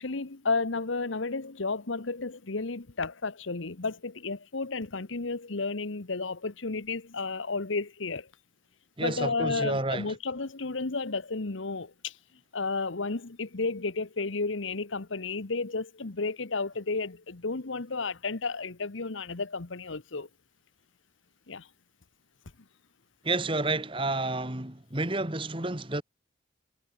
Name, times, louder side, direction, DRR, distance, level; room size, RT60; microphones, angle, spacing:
voice 1, 0.0-8.3 9.0-12.1 12.5-20.3 21.5-21.7, left 3 dB, 80° left, 1.2 m, -32 dB
voice 2, 9.0-10.1 23.2-26.0, right 2 dB, 25° right, 2.0 m, -30 dB
head